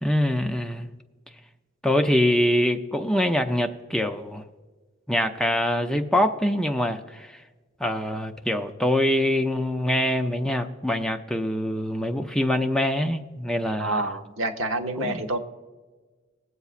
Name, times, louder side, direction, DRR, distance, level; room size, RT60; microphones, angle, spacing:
voice 1, 0.0-0.9 1.8-4.4 5.1-7.4 7.8-14.0 15.0-15.2, left 1 dB, 5° left, 4 dB, 0.4 m, -24 dB
voice 2, 13.8-15.4, right 2 dB, 80° right, 5 dB, 1.0 m, -28 dB
20.0 x 8.0 x 2.5 m, 1.3 s
head